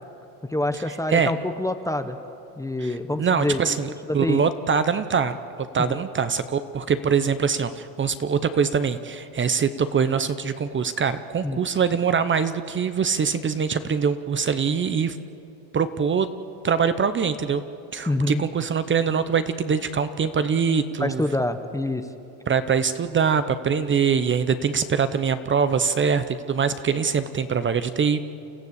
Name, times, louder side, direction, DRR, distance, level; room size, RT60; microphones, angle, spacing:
voice 1, 0.5-2.2 2.6-4.4 5.9-6.0 11.4-11.6 18.1-18.4 21.0-22.1, left 1 dB, 5° left, 8 dB, 0.8 m, -26 dB
voice 2, 2.8-15.2 15.7-16.3 16.6-17.6 17.9-21.2 22.5-28.3, right 6 dB, 25° right, 11 dB, 0.8 m, -23 dB
29.5 x 14.0 x 8.2 m, 2.8 s
supercardioid pair, 120°, 48 cm